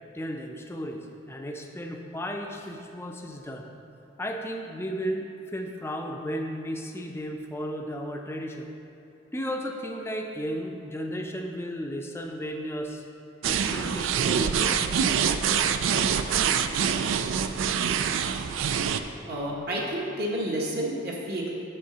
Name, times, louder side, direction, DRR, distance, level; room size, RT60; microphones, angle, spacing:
voice 1, 0.1-3.7 4.2-8.7 9.3-13.0 13.5-14.9, equal, 15° left, 2 dB, 0.5 m, -34 dB
sound 1, 13.4-19.0, right 7 dB, 80° right, 0.3 m, -25 dB
voice 2, 19.3-21.5, right 1 dB, 50° right, -3 dB, 1.1 m, -30 dB
8.2 x 3.7 x 6.7 m, 2.7 s
head